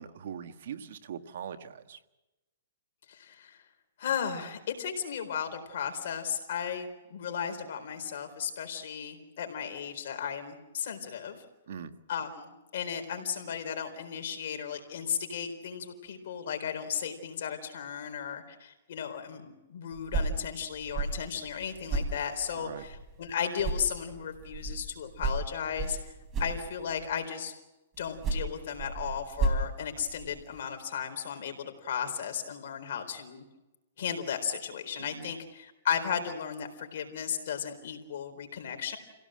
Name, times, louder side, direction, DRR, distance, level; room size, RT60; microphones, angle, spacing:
voice 1, 0.0-2.0 11.7-11.9 22.5-22.8 35.0-35.3, right 8 dB, 65° right, 9 dB, 1.6 m, -41 dB
voice 2, 3.1-3.6 4.0-11.4 12.1-26.0 26.4-27.5 28.0-33.4 34.0-39.0, left 8 dB, 60° left, 5 dB, 4.2 m, -35 dB
sound 1, 19.9-23.3 23.6-27.1 28.0-30.6, right 3 dB, 20° right, 3.8 m, -34 dB
27.5 x 17.0 x 7.7 m, 1.0 s
hypercardioid pair, 155°, 0 cm